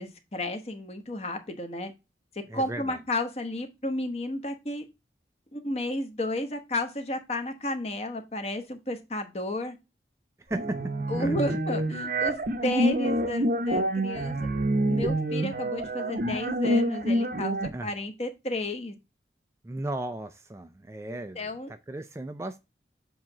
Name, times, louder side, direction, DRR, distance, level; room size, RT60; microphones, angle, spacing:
voice 1, 0.0-1.9 2.5-4.8 5.5-9.8 11.1-14.4 14.9-18.9 21.1-21.7, left 1 dB, 35° left, 1.0 m, -32 dB
voice 2, 2.5-3.0 10.4-10.8 11.2-11.6 17.7-17.9 19.6-22.6, right 1 dB, 15° right, 0.3 m, -36 dB
sound 1, 10.5-17.7, right 1 dB, 50° right, 0.7 m, -27 dB
7.4 x 2.9 x 5.9 m
head